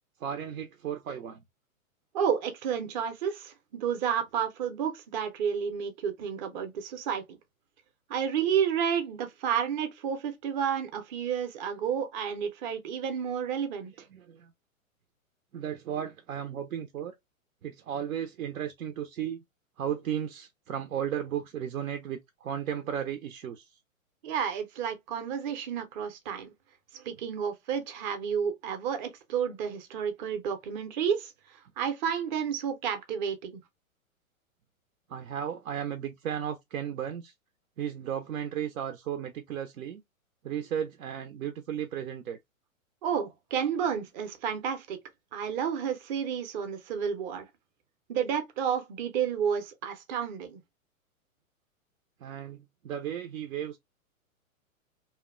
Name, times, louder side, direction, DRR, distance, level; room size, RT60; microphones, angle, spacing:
voice 1, 0.2-1.4 14.1-14.5 15.5-17.2 17.6-19.4 19.8-23.8 35.1-37.3 37.8-40.0 40.4-42.4 52.2-53.8, right 9 dB, 80° right, 0.6 m, -35 dB
voice 2, 2.1-7.4 8.1-14.1 24.2-26.5 26.9-33.6 43.0-45.0 45.3-47.5 48.1-50.6, right 8 dB, 35° right, 0.6 m, -31 dB
2.7 x 2.1 x 2.4 m
hypercardioid pair, 120°, 42 cm